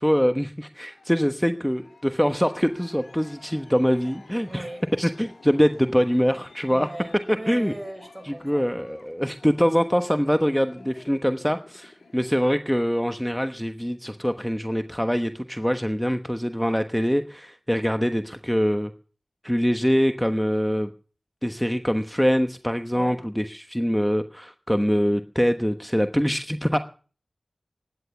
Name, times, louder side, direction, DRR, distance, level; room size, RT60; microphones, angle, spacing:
voice 1, 0.0-4.7 5.0-6.9 7.3-7.7 8.2-18.9 19.4-20.9 21.4-26.8, equal, 5° left, 1.1 m, -24 dB
Aircraft, 0.8-12.5, left 3 dB, 90° left, 4.7 m, -51 dB
voice 2, 4.4-4.9 6.7-8.7 22.9-23.2 26.7-26.8, right 1 dB, 30° right, 4.8 m, -38 dB
16.5 x 11.0 x 7.2 m
wide cardioid pair, 50°, 0 cm